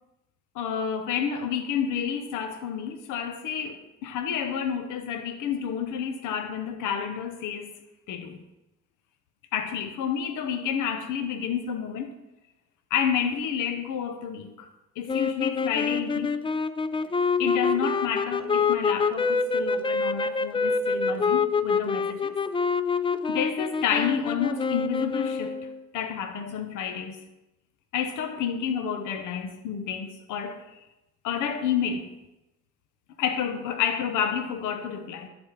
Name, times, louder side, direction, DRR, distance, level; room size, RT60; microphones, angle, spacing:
voice 1, 0.5-7.7 8.1-8.4 9.5-12.1 12.9-14.7 15.0-16.4 17.4-22.4 23.3-25.6 25.9-27.2 27.9-30.8 31.2-32.1 33.2-35.3, left 7 dB, 85° left, 0.8 m, -30 dB
sound 1, 15.1-25.8, left 5 dB, 20° left, 0.3 m, -26 dB
10.5 x 4.3 x 4.7 m
cardioid pair, 90°, 30 cm